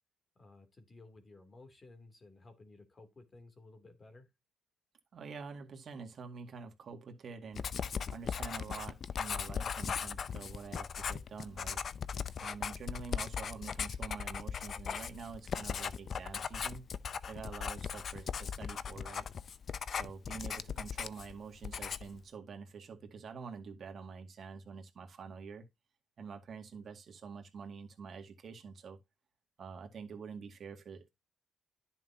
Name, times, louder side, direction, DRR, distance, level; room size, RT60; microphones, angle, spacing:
voice 1, 0.4-4.3, left 2 dB, 30° left, 2.8 m, -56 dB
voice 2, 5.1-7.7 8.1-11.8 12.4-16.9 17.3-19.3 19.9-25.7 26.2-29.0 29.6-31.1, right 5 dB, 55° right, 2.0 m, -47 dB
Writing, 7.6-21.4 21.6-22.2, left 7 dB, 50° left, 0.6 m, -38 dB
10.5 x 5.8 x 2.8 m
cardioid pair, 90°, 0 cm